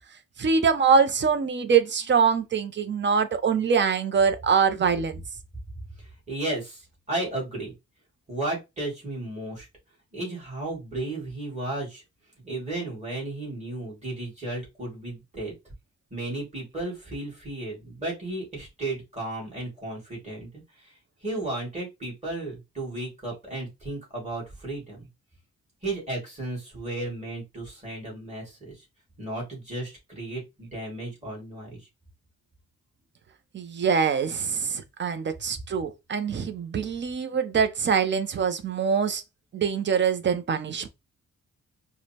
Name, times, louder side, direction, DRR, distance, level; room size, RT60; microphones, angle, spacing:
voice 1, 0.4-5.2 33.5-39.2 39.5-40.9, right 6 dB, 40° right, 0.6 m, -24 dB
voice 2, 6.0-6.8 7.1-7.7 8.3-9.7 10.1-12.0 12.4-15.5 16.1-20.6 21.2-25.0 25.8-28.7 29.2-31.8, right 2 dB, 25° right, 2.4 m, -34 dB
4.7 x 2.2 x 2.9 m
wide cardioid pair, 135°, 30 cm